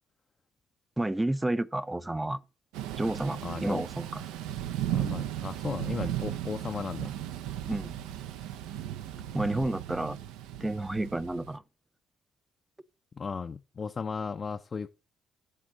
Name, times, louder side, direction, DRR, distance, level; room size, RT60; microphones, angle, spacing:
voice 1, 1.0-2.4 3.0-4.2 7.7-8.0 9.3-10.2 10.6-11.6, right 1 dB, 15° right, 0.5 m, -30 dB
Thunder / Rain, 2.7-11.6, right 12 dB, 85° right, 0.4 m, -36 dB
voice 2, 3.4-3.8 4.9-7.1 13.1-14.9, left 5 dB, 40° left, 0.4 m, -35 dB
7.6 x 3.6 x 6.0 m
supercardioid pair, 65°, 0 cm